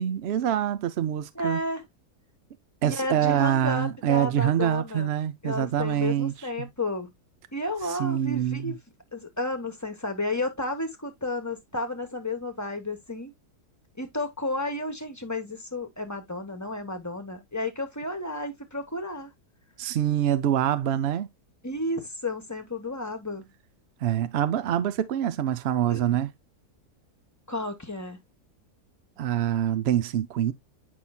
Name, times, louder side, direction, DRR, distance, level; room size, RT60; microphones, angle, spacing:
voice 1, 0.0-1.6 2.8-6.3 6.6-6.7 7.9-8.7 19.8-21.3 24.0-26.3 29.2-30.5, right 10 dB, 65° right, 0.6 m, -25 dB
voice 2, 1.3-1.9 2.8-5.1 5.4-7.1 7.5-8.8 9.1-13.3 14.0-19.3 21.6-23.5 25.9-26.2 27.5-28.2, left 2 dB, 15° left, 0.9 m, -32 dB
8.6 x 5.5 x 2.2 m
omnidirectional pair, 1.7 m